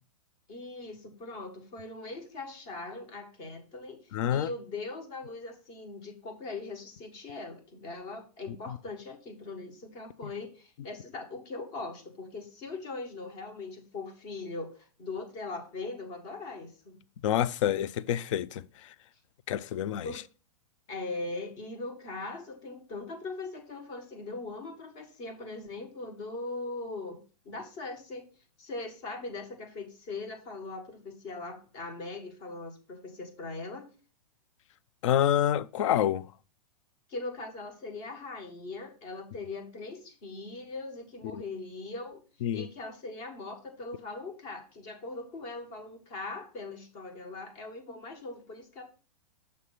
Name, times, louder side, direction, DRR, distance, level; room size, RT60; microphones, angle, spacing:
voice 1, 0.5-17.0 20.0-20.2 20.9-28.3 28.6-33.9 37.1-42.2 42.5-48.8, left 3 dB, 35° left, 1.6 m, -40 dB
voice 2, 4.1-4.5 17.2-18.6 19.5-20.1 35.0-36.2 41.3-41.4 42.4-42.7, left 11 dB, 50° left, 0.4 m, -27 dB
6.8 x 3.2 x 5.5 m
hypercardioid pair, 150°, 20 cm